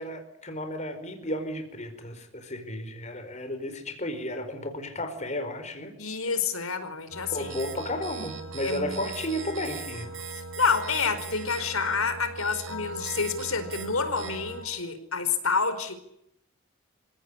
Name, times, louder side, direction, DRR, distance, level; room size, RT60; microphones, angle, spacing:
voice 1, 0.0-5.9 7.3-10.1, left 1 dB, 35° left, 7 dB, 4.7 m, -33 dB
voice 2, 6.0-7.5 8.6-9.1 10.6-15.9, left 5 dB, 85° left, 11 dB, 4.8 m, -28 dB
sound 1, 7.1-14.6, right 3 dB, 65° right, 7.3 m, -39 dB
27.5 x 17.0 x 9.9 m, 0.78 s
head